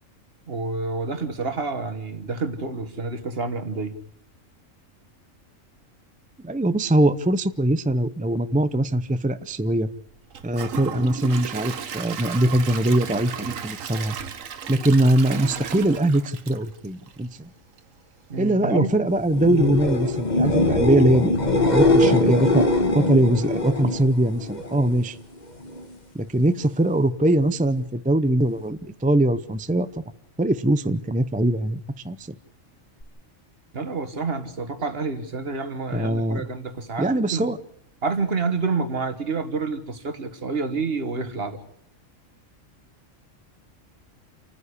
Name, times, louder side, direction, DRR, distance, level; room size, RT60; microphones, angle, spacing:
voice 1, 0.5-3.9 14.9-15.0 18.3-18.9 33.7-37.5 38.0-41.6, right 4 dB, 50° right, 9 dB, 1.7 m, -28 dB
voice 2, 6.4-9.9 10.4-14.1 14.7-17.5 18.4-21.3 21.7-22.6 22.9-25.2 26.1-29.9 30.4-31.8 32.0-32.3 35.9-36.4 37.0-37.6, right 1 dB, 10° right, 11 dB, 0.4 m, -22 dB
Gurgling / Toilet flush / Trickle dribble, 10.3-17.4 17.8-17.9 18.4-18.5, right 7 dB, 85° right, 1.4 m, -35 dB
sound 1, 19.3-25.0 25.4-25.9 33.0-33.1, left 2 dB, 35° left, 1.7 m, -22 dB
29.0 x 9.8 x 9.8 m, 0.74 s
omnidirectional pair, 1.3 m